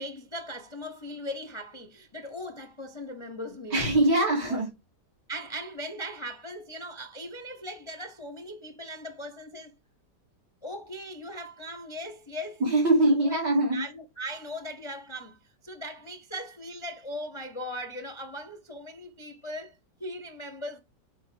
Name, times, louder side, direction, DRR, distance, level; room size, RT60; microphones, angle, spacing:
voice 1, 0.0-3.8 4.4-4.6 5.3-9.7 10.6-12.6 13.2-13.4 13.7-20.8, equal, 30° left, 0.5 m, -39 dB
voice 2, 3.7-4.7 12.6-13.8, right 1 dB, 75° right, 3.8 m, -22 dB
7.6 x 4.3 x 5.1 m
omnidirectional pair, 1.8 m